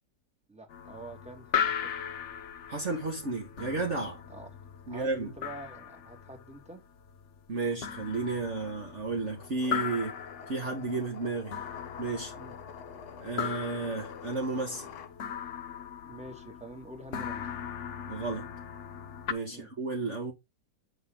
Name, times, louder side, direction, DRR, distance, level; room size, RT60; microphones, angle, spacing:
voice 1, 0.5-1.9 4.3-4.5 4.9-6.8 12.3-12.5 16.0-17.5 19.5-19.7, right 1 dB, 5° right, 2.0 m, -46 dB
sound 1, 0.7-19.3, left 8 dB, 55° left, 1.0 m, -38 dB
voice 2, 2.7-4.2 4.9-5.3 7.5-10.1 10.5-11.5 12.0-12.3 13.2-14.9 18.1-18.5 19.3-20.3, right 3 dB, 45° right, 2.0 m, -32 dB
sound 2, 9.4-15.1, left 7 dB, 70° left, 1.6 m, -48 dB
8.7 x 6.2 x 3.8 m
omnidirectional pair, 1.8 m